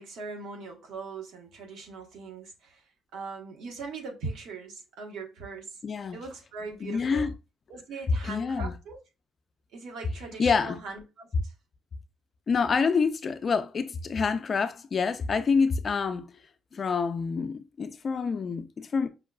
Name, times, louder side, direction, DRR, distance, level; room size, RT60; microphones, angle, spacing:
voice 1, 0.0-2.8 3.1-5.8 6.1-7.3 7.7-9.0 9.7-11.5, right 4 dB, 80° right, 1.1 m, -40 dB
voice 2, 5.8-6.2 6.8-7.3 8.2-8.7 10.4-10.8 12.5-16.3 16.7-19.1, left 5 dB, 45° left, 0.4 m, -27 dB
5.4 x 2.3 x 2.2 m
cardioid pair, 90°, 0 cm